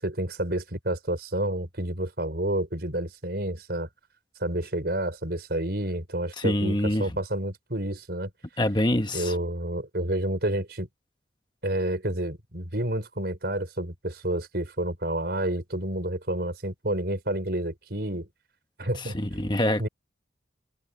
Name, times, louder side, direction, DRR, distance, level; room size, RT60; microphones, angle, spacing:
voice 1, 0.0-3.9 4.4-8.3 9.1-10.9 11.6-18.3 18.8-19.2 19.8-19.9, right 1 dB, 60° right, 5.4 m, -29 dB
voice 2, 6.4-7.1 8.6-9.3 19.0-19.9, left 1 dB, 25° left, 1.3 m, -25 dB
head